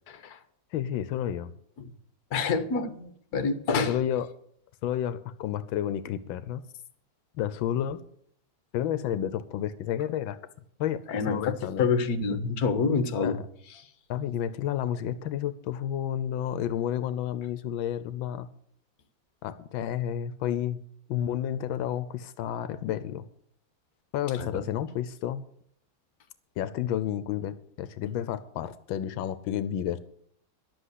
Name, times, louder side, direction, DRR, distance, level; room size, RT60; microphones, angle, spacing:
voice 1, 0.1-0.4 1.8-1.9 2.3-4.0 11.1-13.4 13.7-13.9 24.4-24.5, left 5 dB, 55° left, 9 dB, 1.5 m, -27 dB
voice 2, 0.7-1.5 3.9-4.3 4.8-6.6 7.3-8.0 8.7-10.4 10.8-11.9 13.2-13.3 14.1-18.5 19.4-20.8 21.1-23.2 24.1-25.4 26.6-30.0, left 10 dB, 85° left, 13 dB, 1.4 m, -31 dB
11.5 x 7.9 x 8.1 m, 0.66 s
omnidirectional pair, 2.1 m